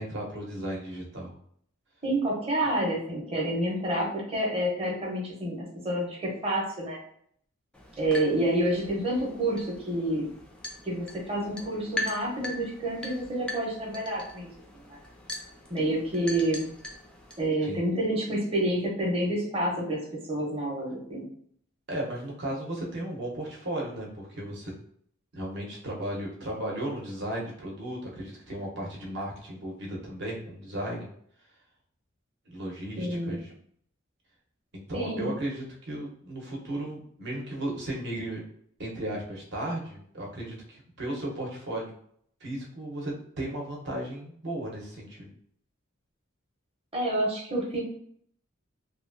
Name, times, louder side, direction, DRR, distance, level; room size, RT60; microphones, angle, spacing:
voice 1, 0.0-1.3 17.6-17.8 21.9-24.7 25.3-31.1 32.5-33.5 34.7-38.4 38.8-41.9 42.4-45.3, right 1 dB, 60° right, -3 dB, 0.8 m, -35 dB
voice 2, 2.0-7.0 8.0-10.3 10.8-14.5 14.9-15.0 15.7-16.7 17.4-21.3 33.0-33.4 34.9-35.3 46.9-47.8, right 1 dB, 30° right, -3 dB, 0.8 m, -28 dB
sound 1, 7.7-17.5, left 2 dB, 5° left, 0.3 m, -41 dB
2.9 x 2.3 x 2.5 m, 0.65 s
head